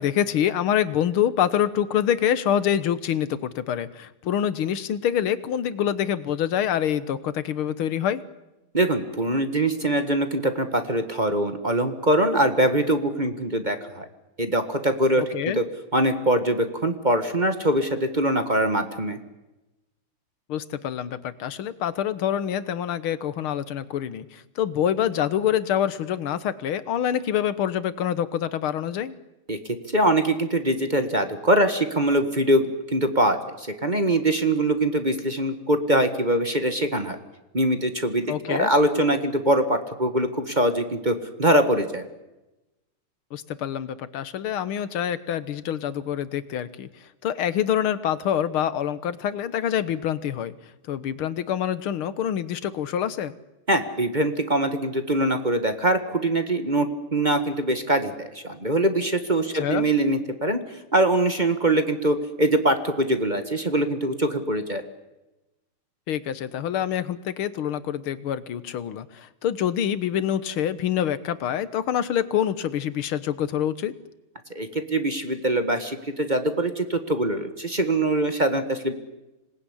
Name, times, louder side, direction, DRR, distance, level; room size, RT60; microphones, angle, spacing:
voice 1, 0.0-8.2 15.2-15.6 20.5-29.2 38.3-38.7 43.3-46.9 47.2-50.5 50.9-53.3 59.5-59.9 66.1-74.0, left 10 dB, 75° left, 15 dB, 2.0 m, -26 dB
voice 2, 8.7-14.0 14.4-15.6 15.9-19.2 29.5-29.6 29.9-37.2 37.5-42.0 53.7-60.6 60.9-64.8 74.5-78.9, right 1 dB, 20° right, 8 dB, 1.7 m, -23 dB
26.5 x 20.0 x 10.0 m, 1.0 s
omnidirectional pair, 2.4 m